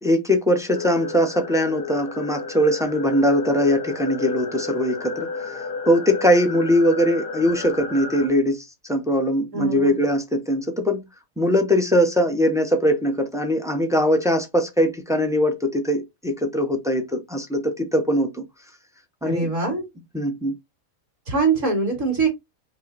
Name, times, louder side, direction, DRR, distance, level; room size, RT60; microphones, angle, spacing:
voice 1, 0.0-5.6 5.9-11.1 11.4-18.4 19.2-19.5 20.1-20.5, equal, 5° right, 0.4 m, -21 dB
sound 1, 0.7-8.3, left 4 dB, 90° left, 1.9 m, -32 dB
voice 2, 9.5-10.0 19.2-19.8 21.3-22.3, right 4 dB, 60° right, 2.5 m, -23 dB
5.4 x 2.1 x 4.0 m
omnidirectional pair, 1.5 m